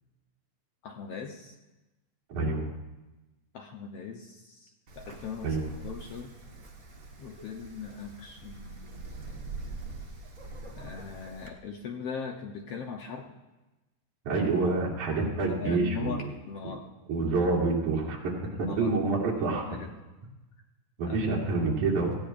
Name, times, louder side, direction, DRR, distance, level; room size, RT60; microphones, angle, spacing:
voice 1, 0.8-1.6 3.5-5.6 5.8-6.3 7.2-9.1 10.8-13.4 15.6-16.9 18.6-18.9 19.6-19.9 21.1-21.2, left 6 dB, 65° left, 2 dB, 1.6 m, -39 dB
voice 2, 2.3-2.7 5.4-5.7 14.3-16.1 17.1-19.7 21.0-22.2, right 3 dB, 75° right, -4 dB, 4.1 m, -27 dB
Wind, 4.9-11.5, right 3 dB, 40° right, 1.3 m, -44 dB
19.5 x 16.0 x 2.5 m, 1.1 s
omnidirectional pair, 3.5 m